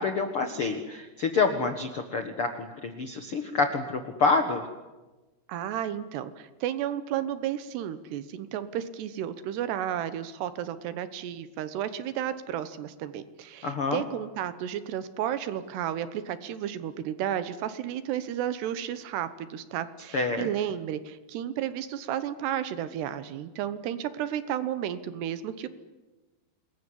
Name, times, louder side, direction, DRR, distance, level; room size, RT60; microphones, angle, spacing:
voice 1, 0.0-4.6 13.6-14.0 20.1-20.5, left 4 dB, 60° left, 6 dB, 1.4 m, -27 dB
voice 2, 5.5-25.7, right 10 dB, 75° right, 13 dB, 3.1 m, -32 dB
27.0 x 21.5 x 10.0 m, 1.2 s
omnidirectional pair, 5.1 m